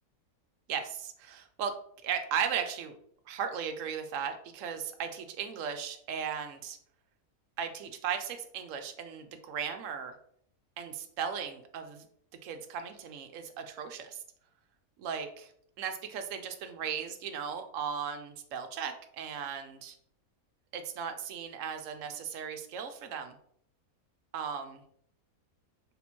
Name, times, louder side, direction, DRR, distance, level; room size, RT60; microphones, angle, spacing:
voice 1, 0.7-1.7 2.0-3.0 3.3-6.8 7.6-10.1 10.8-12.1 12.4-14.2 15.0-15.5 15.8-20.0 20.7-23.4 24.3-24.8, right 7 dB, 70° right, 7 dB, 0.8 m, -36 dB
3.6 x 2.9 x 4.2 m, 0.65 s
omnidirectional pair, 1.6 m